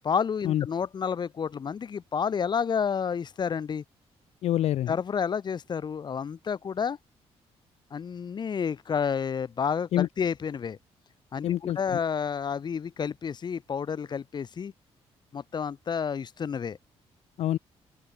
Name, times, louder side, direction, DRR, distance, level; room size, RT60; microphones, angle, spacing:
voice 1, 0.0-3.8 4.9-7.0 7.9-10.8 11.3-14.7 15.3-16.8, left 7 dB, 40° left, 3.5 m, -30 dB
voice 2, 4.4-4.9 9.9-10.1 11.4-12.0 17.4-17.6, left 12 dB, 75° left, 0.9 m, -26 dB
open air
cardioid pair, 125°, 11 cm